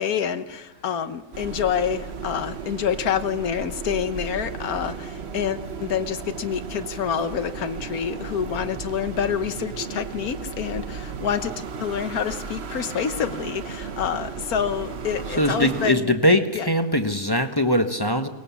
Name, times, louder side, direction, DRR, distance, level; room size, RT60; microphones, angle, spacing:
voice 1, 0.0-11.5 11.8-16.1 16.5-16.7, left 8 dB, 65° left, 11 dB, 1.5 m, -27 dB
sound 1, 1.3-15.9, right 5 dB, 45° right, 1.1 m, -35 dB
voice 2, 15.4-18.3, equal, 20° left, 7 dB, 0.8 m, -21 dB
22.0 x 20.0 x 7.1 m, 1.2 s
omnidirectional pair, 1.8 m